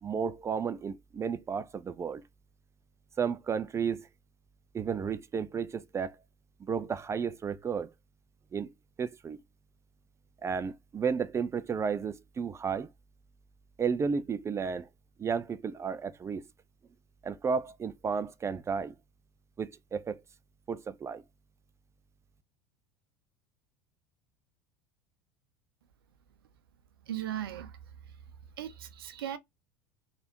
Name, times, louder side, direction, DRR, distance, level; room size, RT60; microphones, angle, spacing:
voice 1, 0.0-2.2 3.2-4.1 4.7-6.2 6.6-7.9 8.5-8.7 9.0-9.4 10.4-12.9 13.8-14.9 15.2-16.4 17.2-18.9 19.6-20.2 20.7-21.2, right 6 dB, 25° right, 0.4 m, -33 dB
voice 2, 27.1-27.8 28.6-29.4, right 11 dB, 70° right, 0.7 m, -37 dB
3.4 x 2.5 x 4.4 m
figure-of-eight pair, 75°, 12 cm